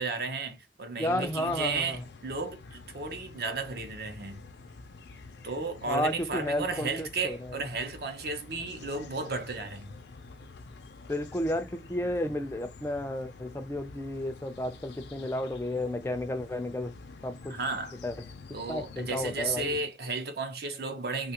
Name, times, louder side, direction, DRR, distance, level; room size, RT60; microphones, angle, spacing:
voice 1, 0.0-4.4 5.4-9.9 17.5-18.0 18.5-21.3, right 3 dB, 60° right, 0.7 m, -34 dB
sound 1, 1.0-19.8, left 3 dB, 70° left, 0.5 m, -48 dB
voice 2, 1.0-2.0 5.9-7.6 11.1-16.9 17.2-17.6 18.0-18.3 18.7-19.8, left 1 dB, 15° left, 0.3 m, -32 dB
3.1 x 2.3 x 2.8 m
head